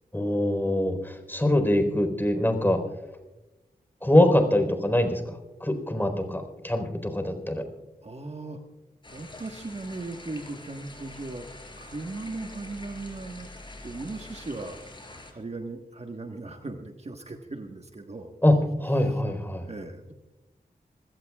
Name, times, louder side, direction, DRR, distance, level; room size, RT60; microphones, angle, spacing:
voice 1, 0.1-2.8 4.0-7.7 18.4-19.7, left 1 dB, 15° left, 6 dB, 4.2 m, -24 dB
voice 2, 8.0-8.6 9.1-11.4 11.8-13.5 13.8-14.8 15.3-18.3 19.7-20.1, right 2 dB, 40° right, 4 dB, 1.4 m, -37 dB
sound 1, 9.0-15.3, left 2 dB, 30° left, 4.4 m, -45 dB
26.0 x 17.0 x 2.4 m, 1.0 s
cardioid pair, 50°, 16 cm